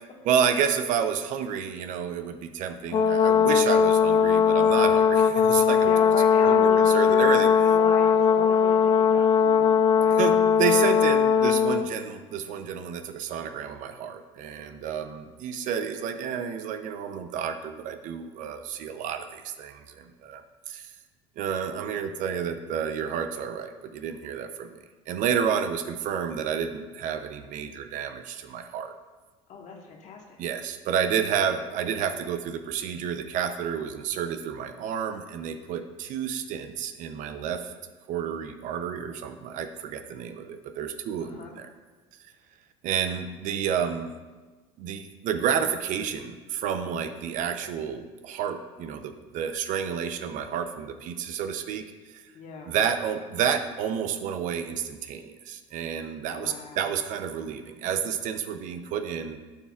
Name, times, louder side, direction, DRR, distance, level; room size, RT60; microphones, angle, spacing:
voice 1, 0.2-5.9 6.4-7.5 10.2-20.9 21.4-24.8 25.1-28.9 30.4-37.7 38.1-41.7 42.8-44.1 44.8-51.8 52.1-52.2 52.7-59.4, right 8 dB, 60° right, 8 dB, 0.6 m, -30 dB
Brass instrument, 2.9-11.9, left 7 dB, 30° left, 0.4 m, -20 dB
voice 2, 5.8-10.3 29.5-30.4 41.2-41.5 52.3-52.7 56.2-56.9, left 5 dB, 55° left, 0 dB, 1.4 m, -38 dB
13.0 x 4.4 x 2.4 m, 1.3 s
supercardioid pair, 90°, 15 cm